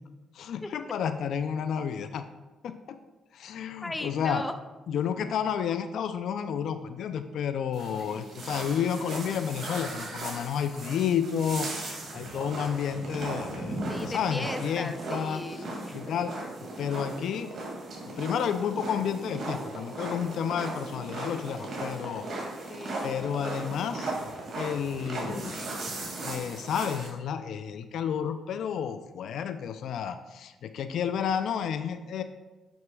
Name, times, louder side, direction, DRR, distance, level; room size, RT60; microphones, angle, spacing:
voice 1, 0.4-2.2 2.6-3.0 3.3-4.4 4.9-15.4 15.9-16.4 16.8-17.5 18.2-22.2 23.0-24.2 24.6-25.7 26.2-32.2, left 8 dB, 70° left, 9 dB, 0.3 m, -31 dB
voice 2, 3.8-4.6 8.0-8.4 13.9-16.0 21.8-23.3, left 2 dB, 15° left, 8 dB, 0.5 m, -39 dB
sound 1, 7.7-27.1, right 2 dB, 60° right, 2.1 m, -37 dB
8.9 x 6.3 x 2.3 m, 1.1 s
cardioid pair, 90°, 0 cm